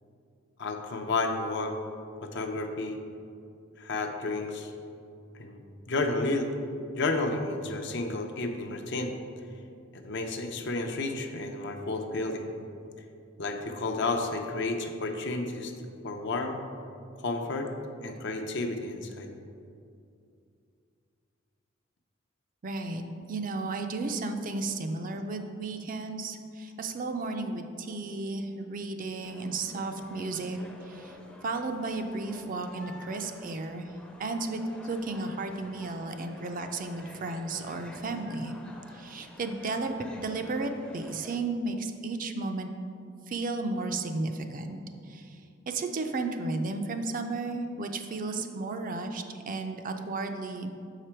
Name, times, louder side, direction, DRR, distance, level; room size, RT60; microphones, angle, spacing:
voice 1, 0.6-1.7 2.2-3.0 3.8-4.7 5.4-5.6 5.9-6.5 6.9-9.1 9.9-12.5 13.4-15.7 16.0-16.6 17.2-17.7 18.0-19.3, left 2 dB, 65° left, 4 dB, 0.6 m, -31 dB
voice 2, 22.6-23.0 23.3-31.2 31.4-33.9 34.2-38.5 38.9-42.7 43.3-44.8 45.1-45.4 45.7-50.7, right 3 dB, 45° right, 6 dB, 0.4 m, -33 dB
sound 1, 29.2-41.4, left 1 dB, 5° left, 0.5 m, -50 dB
6.7 x 4.9 x 4.4 m, 2.5 s
head